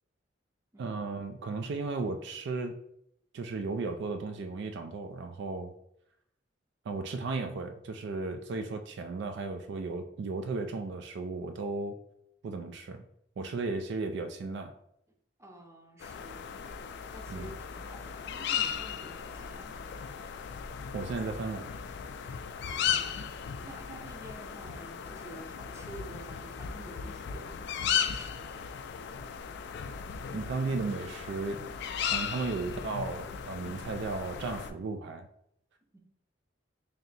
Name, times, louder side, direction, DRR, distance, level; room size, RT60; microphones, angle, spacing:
voice 1, 0.8-2.8 3.3-5.7 6.9-12.0 12.4-13.0 13.4-14.7 17.3-17.5 20.9-21.7 30.3-31.7 32.1-35.3, right 3 dB, 65° right, 7 dB, 0.3 m, -35 dB
voice 2, 15.4-16.5 17.1-19.8 22.8-23.2 23.6-28.5 35.9-36.0, right 1 dB, 15° right, 2 dB, 0.6 m, -50 dB
sound 1, 16.0-34.7, left 8 dB, 65° left, 0.3 m, -36 dB
3.3 x 2.7 x 4.0 m, 0.75 s
head